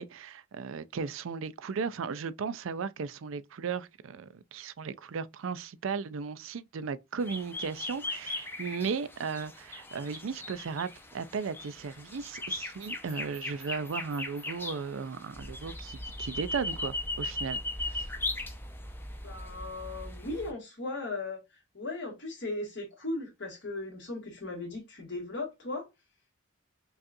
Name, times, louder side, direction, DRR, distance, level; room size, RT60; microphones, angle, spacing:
voice 1, 0.0-18.1, right 5 dB, 65° right, 0.4 m, -36 dB
sound 1, 7.2-20.5, left 2 dB, 10° left, 0.5 m, -38 dB
voice 2, 19.2-21.4 21.7-25.9, left 2 dB, 55° left, 1.8 m, -37 dB
5.2 x 2.4 x 2.5 m
head